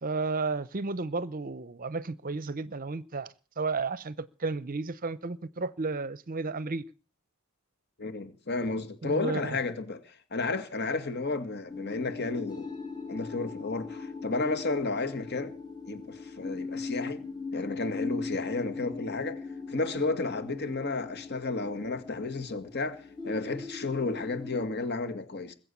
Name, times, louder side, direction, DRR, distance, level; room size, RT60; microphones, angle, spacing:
voice 1, 0.0-6.8 9.0-9.6, right 3 dB, 40° right, 0.7 m, -33 dB
voice 2, 8.0-12.7 13.1-15.5 15.9-17.2 17.5-19.4 19.7-25.6, left 3 dB, 50° left, 2.1 m, -32 dB
sound 1, 11.7-24.7, left 4 dB, 20° left, 1.6 m, -39 dB
21.5 x 7.9 x 8.4 m
head